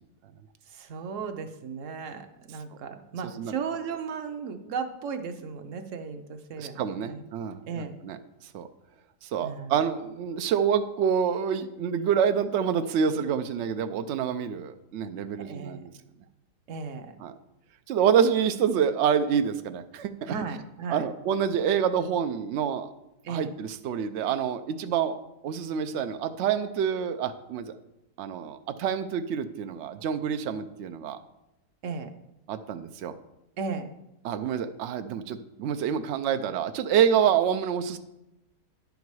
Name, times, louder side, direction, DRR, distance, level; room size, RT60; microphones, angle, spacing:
voice 1, 0.7-7.2 7.7-8.0 9.4-9.7 15.4-15.9 16.7-17.2 20.3-21.1 23.2-23.5 31.8-32.2 33.6-33.9, right 5 dB, 60° right, 8 dB, 0.9 m, -35 dB
voice 2, 6.6-8.2 8.5-8.7 9.2-15.9 17.2-17.3 17.9-20.4 20.9-22.9 23.3-25.2 25.4-27.8 28.2-31.2 32.5-33.1 34.2-38.0, right 8 dB, 85° right, 9 dB, 0.6 m, -27 dB
10.5 x 5.3 x 4.7 m, 0.91 s
omnidirectional pair, 1.7 m